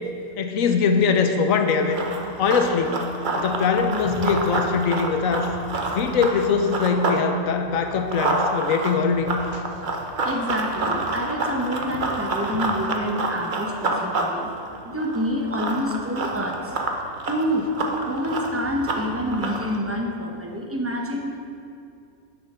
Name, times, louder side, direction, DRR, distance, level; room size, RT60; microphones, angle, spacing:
voice 1, 0.4-2.0 2.4-3.0 3.4-5.5 5.9-9.6, left 5 dB, 70° left, 6 dB, 1.1 m, -22 dB
Run, 1.7-7.2 7.6-19.8, right 2 dB, 40° right, 0.9 m, -28 dB
voice 2, 10.2-14.5 14.8-16.7 17.3-17.7 18.1-21.3, equal, 10° right, 1 dB, 0.7 m, -27 dB
8.8 x 7.0 x 5.5 m, 2.4 s
omnidirectional pair, 1.5 m